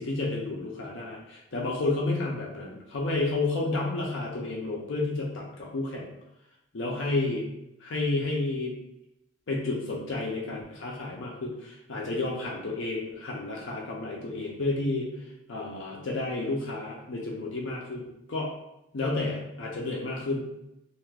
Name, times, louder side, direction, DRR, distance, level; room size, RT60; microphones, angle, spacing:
voice 1, 0.0-6.1 6.7-7.4 7.8-8.8 9.5-15.1 15.5-18.5 18.9-20.5, left 2 dB, 65° left, -2 dB, 0.5 m, -31 dB
2.5 x 2.3 x 3.3 m, 0.87 s
head